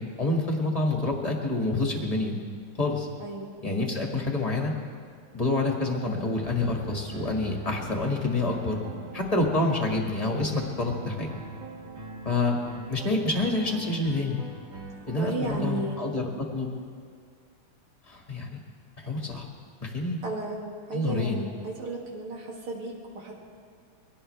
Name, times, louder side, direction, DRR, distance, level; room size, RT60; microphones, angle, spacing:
voice 1, 0.2-2.4 2.8-3.1 3.6-4.7 5.3-8.8 9.1-11.3 12.3-12.6 12.9-14.4 15.1-16.7 18.1-18.6 19.0-19.5 19.8-20.2 20.9-21.4, left 2 dB, 15° left, 0 dB, 1.8 m, -27 dB
voice 2, 3.2-3.6 15.0-16.0 20.2-20.6 20.9-23.3, right 2 dB, 75° right, -2 dB, 3.4 m, -34 dB
sound 1, 6.4-16.0, right 2 dB, 60° right, 2.8 m, -42 dB
23.0 x 17.5 x 3.4 m, 2.1 s
omnidirectional pair, 2.4 m